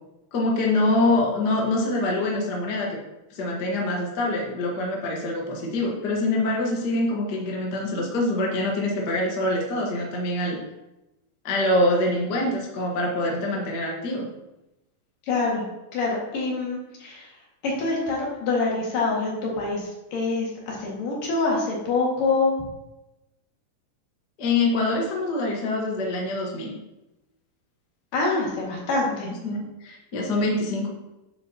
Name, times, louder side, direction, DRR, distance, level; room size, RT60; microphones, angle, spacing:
voice 1, 0.3-3.0 3.3-10.6 11.4-14.3 24.4-26.7 29.4-30.9, left 2 dB, 45° left, -1 dB, 1.4 m, -25 dB
voice 2, 15.3-15.6 15.9-17.3 17.6-22.5 28.1-29.3, left 3 dB, 75° left, -4 dB, 3.8 m, -25 dB
9.7 x 7.6 x 2.9 m, 0.95 s
omnidirectional pair, 3.9 m